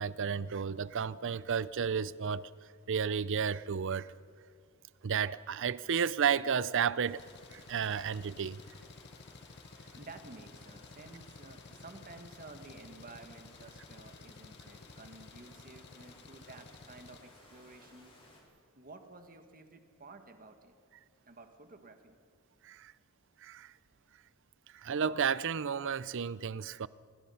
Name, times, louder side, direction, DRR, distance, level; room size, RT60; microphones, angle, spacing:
voice 1, 0.0-2.5 2.9-4.1 5.0-7.2 7.5-8.6 22.6-22.9 23.4-23.7 24.7-26.9, right 7 dB, 55° right, 0.5 m, -32 dB
sound 1, 7.0-18.4, left 1 dB, 25° left, 4.8 m, -58 dB
Engine, 7.2-17.2, left 4 dB, 50° left, 0.8 m, -54 dB
voice 2, 9.9-18.1 18.8-20.7 21.3-22.2, right 3 dB, 40° right, 1.8 m, -52 dB
27.5 x 20.5 x 5.8 m
head